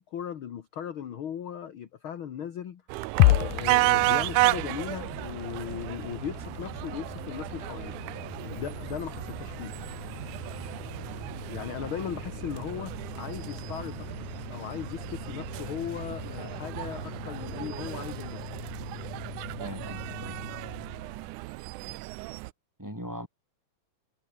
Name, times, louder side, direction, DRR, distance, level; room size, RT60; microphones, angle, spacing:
voice 1, 0.0-2.8 3.2-7.9 8.4-9.7 11.5-14.2 14.5-18.4, left 9 dB, 55° left, 1.5 m, -37 dB
sound 1, 2.9-22.5, right 19 dB, 80° right, 1.8 m, -33 dB
sound 2, 3.2-21.4, left 16 dB, 90° left, 2.8 m, -34 dB
voice 2, 19.6-20.4 22.8-23.3, equal, 5° right, 4.4 m, -39 dB
omnidirectional pair, 4.2 m